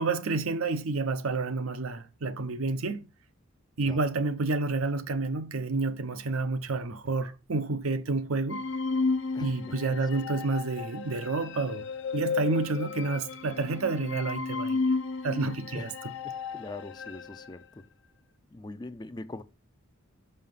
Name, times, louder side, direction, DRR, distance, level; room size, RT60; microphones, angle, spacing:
voice 1, 0.0-3.0 3.8-8.6 9.4-11.9 12.1-14.8 15.2-15.9, right 3 dB, 85° right, 0.7 m, -29 dB
sound 1, 8.5-17.5, left 4 dB, 60° left, 0.6 m, -33 dB
voice 2, 9.3-9.8 15.7-15.9 16.2-17.9 18.5-19.4, left 2 dB, 20° left, 0.4 m, -42 dB
5.7 x 5.6 x 5.4 m
head